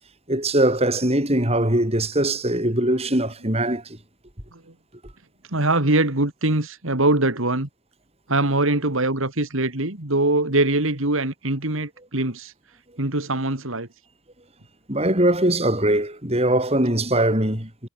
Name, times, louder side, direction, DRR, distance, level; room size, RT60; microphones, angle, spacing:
voice 1, 0.3-4.0 14.9-17.9, right 1 dB, 30° right, 6.2 m, -21 dB
voice 2, 5.5-7.7 8.3-12.5 13.0-13.9, right 2 dB, 75° right, 3.0 m, -23 dB
head